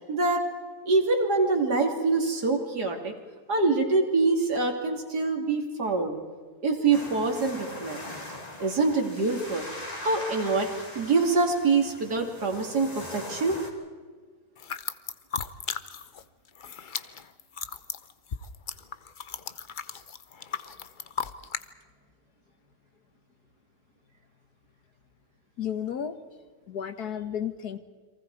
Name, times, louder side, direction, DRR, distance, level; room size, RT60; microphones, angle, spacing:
voice 1, 0.1-0.5 0.9-3.1 3.5-6.2 6.6-8.0 8.6-10.7 10.9-13.6, right 3 dB, 85° right, 3 dB, 3.2 m, -25 dB
sound 1, 6.9-13.7, left 1 dB, 25° left, 2.7 m, -41 dB
sound 2, 14.6-16.2 16.5-21.7, left 6 dB, 45° left, 0.7 m, -36 dB
voice 2, 25.6-26.2 26.7-27.8, left 9 dB, 75° left, 10 dB, 1.8 m, -32 dB
30.0 x 23.5 x 4.7 m, 1.5 s
omnidirectional pair, 1.7 m